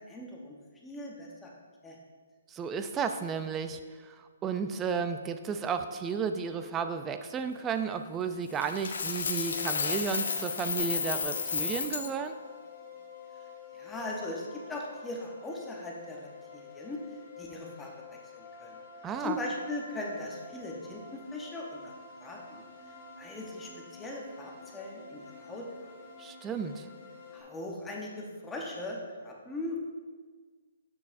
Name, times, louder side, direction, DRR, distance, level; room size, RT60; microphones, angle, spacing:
voice 1, 0.1-0.6 0.8-1.5 1.8-2.0 13.7-17.0 17.4-18.8 19.2-21.9 22.2-22.7 23.2-25.7 27.3-29.8, left 2 dB, 10° left, -2 dB, 0.8 m, -39 dB
voice 2, 2.5-12.4 19.0-19.4 26.2-26.9, right 6 dB, 15° right, 9 dB, 0.3 m, -33 dB
Coin (dropping), 8.6-12.1, left 5 dB, 70° left, 0.5 m, -32 dB
sound 1, 9.1-27.4, left 5 dB, 40° left, 1.8 m, -49 dB
7.0 x 6.7 x 2.5 m, 1.5 s
hypercardioid pair, 150°, 0 cm